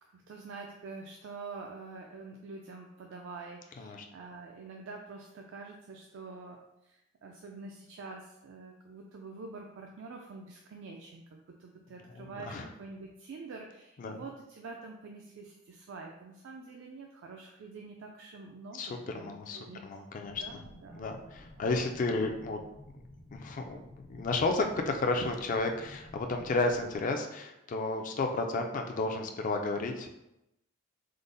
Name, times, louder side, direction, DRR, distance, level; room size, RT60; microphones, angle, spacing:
voice 1, 0.0-19.9 20.4-21.1 21.6-21.7, right 3 dB, 60° right, 0 dB, 0.3 m, -46 dB
voice 2, 12.1-12.7 14.0-14.2 18.7-20.6 20.9-22.6 23.3-30.1, left 3 dB, 40° left, 4 dB, 0.3 m, -32 dB
sound 1, 20.2-27.0, equal, 70° left, 0.9 m, -52 dB
3.7 x 2.0 x 3.8 m, 0.88 s
head